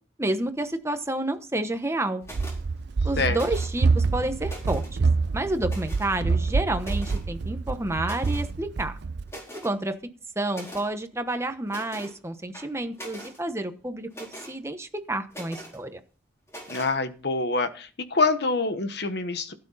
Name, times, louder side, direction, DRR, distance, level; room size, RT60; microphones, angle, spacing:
voice 1, 0.2-2.2 3.0-4.8 5.3-9.0 9.5-9.9 10.4-16.0, right 1 dB, 15° right, 8 dB, 1.1 m, -29 dB
sound 1, 2.2-2.6 3.3-3.9 4.3-4.9 5.6-6.2 6.8-7.3 8.0-8.5 8.9-9.0 9.3-9.7 10.5-10.9 11.7-12.1 12.5-13.4 14.1-14.5 15.3-15.8 16.5-16.9, equal, 15° left, 4.3 m, -42 dB
Run, 2.3-9.3, right 4 dB, 60° right, 0.5 m, -26 dB
voice 2, 16.7-19.5, left 3 dB, 60° left, 9 dB, 1.2 m, -26 dB
16.5 x 8.9 x 4.1 m, 0.38 s
head